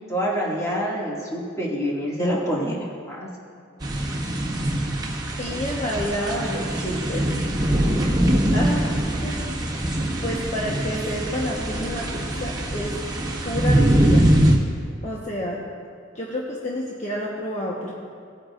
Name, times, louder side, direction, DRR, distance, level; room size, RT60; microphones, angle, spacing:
voice 1, 0.1-3.3, equal, 15° left, -5 dB, 2.2 m, -26 dB
sound 1, 3.8-14.6, right 1 dB, 20° right, 1.6 m, -23 dB
voice 2, 5.4-7.3 8.5-8.9 9.2-9.6 10.2-13.0 13.4-14.3 15.0-15.6 16.1-17.9, equal, 35° left, -4 dB, 1.2 m, -29 dB
18.5 x 9.4 x 2.5 m, 2.3 s
head